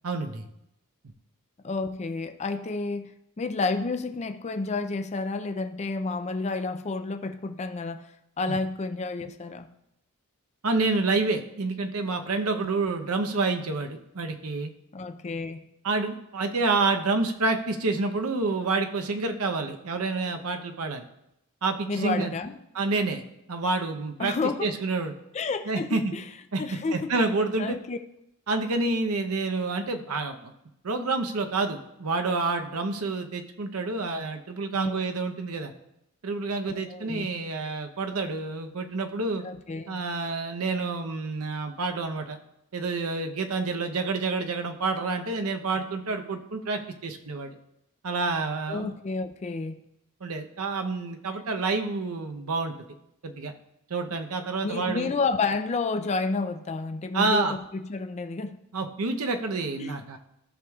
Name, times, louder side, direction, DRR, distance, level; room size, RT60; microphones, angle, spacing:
voice 1, 0.0-0.4 8.5-8.6 10.6-14.7 15.8-21.1 21.6-22.3 22.7-23.2 23.5-24.3 24.6-25.1 25.7-26.0 26.5-26.6 26.9-27.8 28.5-30.5 30.8-35.7 36.2-39.4 39.9-42.4 42.7-47.5 48.0-48.9 50.2-52.7 53.2-53.5 53.9-55.1 57.1-57.6 58.7-60.2, right 3 dB, 75° right, 6 dB, 0.8 m, -28 dB
voice 2, 1.6-3.1 3.4-9.7 12.6-12.7 14.9-15.7 21.9-22.6 24.2-24.7 25.3-26.3 26.6-27.1 27.6-28.0 34.7-35.0 36.7-37.3 39.4-40.0 48.7-49.8 54.6-58.6 59.8-60.2, left 3 dB, 30° left, 8 dB, 0.4 m, -30 dB
13.5 x 6.3 x 2.3 m, 0.82 s
head